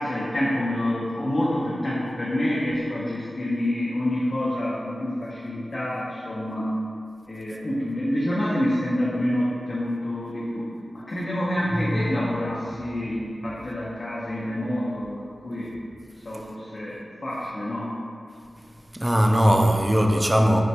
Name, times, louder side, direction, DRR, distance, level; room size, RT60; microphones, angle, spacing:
voice 1, 0.0-6.7 7.3-10.7 10.9-15.7 16.3-17.0 17.2-17.9, left 1 dB, 55° left, -7 dB, 0.5 m, -27 dB
voice 2, 11.7-12.0 13.0-13.1 16.3-16.5 18.6-20.6, equal, 15° right, 2 dB, 0.3 m, -21 dB
4.3 x 2.1 x 2.7 m, 2.3 s
wide cardioid pair, 70°, 0 cm